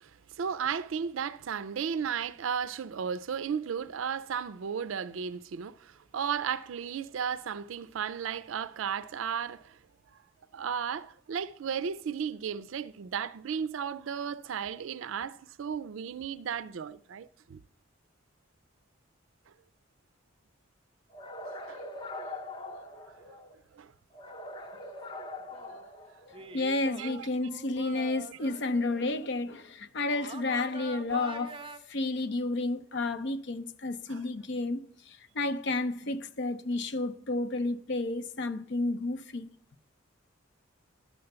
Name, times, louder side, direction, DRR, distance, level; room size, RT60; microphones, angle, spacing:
voice 1, 0.0-9.8 10.1-10.2 10.5-17.6 21.7-21.8 22.2-22.4 23.1-23.4 23.7-23.9 27.0-27.3 34.1-34.2, right 7 dB, 80° right, 0.4 m, -35 dB
sound 1, 21.1-23.5 24.1-26.6, left 2 dB, 25° left, 0.7 m, -42 dB
sound 2, 25.4-25.9 26.3-29.1 30.1-31.8, right 3 dB, 25° right, 0.5 m, -45 dB
voice 2, 26.5-31.6 31.9-39.5, left 2 dB, 60° left, 0.6 m, -31 dB
11.5 x 6.8 x 6.7 m
head